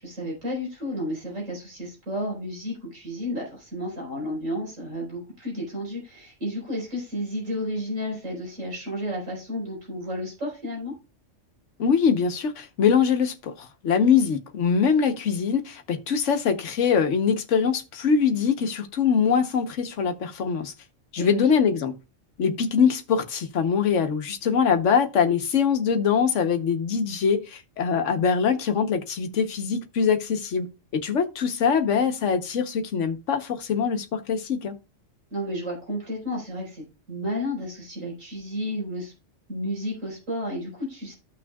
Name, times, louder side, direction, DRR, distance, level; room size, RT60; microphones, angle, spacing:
voice 1, 0.0-10.9 21.2-21.5 35.3-39.1 39.5-41.1, equal, 80° right, 4.9 m, -32 dB
voice 2, 11.8-20.7 21.1-21.9 22.4-30.7 30.9-34.7, left 6 dB, 70° left, 1.3 m, -23 dB
14.5 x 6.0 x 2.3 m
omnidirectional pair, 1.3 m